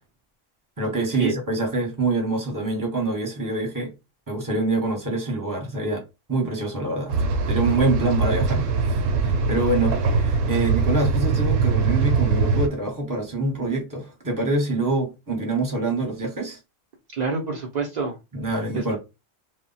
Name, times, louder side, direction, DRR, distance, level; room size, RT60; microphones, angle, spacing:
voice 1, 0.8-3.9 4.3-6.0 6.3-7.2 7.5-9.0 9.2-16.6 18.3-19.0, right 2 dB, 20° right, 0.7 m, -25 dB
sound 1, 7.1-12.7, right 4 dB, 80° right, 0.9 m, -22 dB
voice 2, 17.1-18.2 18.7-19.0, right 4 dB, 65° right, 0.4 m, -27 dB
2.1 x 2.1 x 3.8 m
omnidirectional pair, 1.3 m